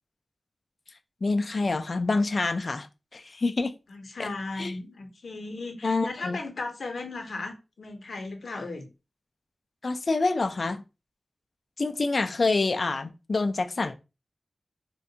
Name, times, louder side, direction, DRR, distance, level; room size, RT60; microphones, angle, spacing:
voice 1, 1.2-2.9 3.1-3.7 4.2-4.3 4.6-4.7 5.8-6.4 9.8-10.8 11.8-13.9, left 3 dB, 50° left, 0.3 m, -26 dB
voice 2, 3.9-8.9, left 3 dB, 80° left, 0.7 m, -36 dB
3.4 x 2.2 x 2.7 m
wide cardioid pair, 105°, 0 cm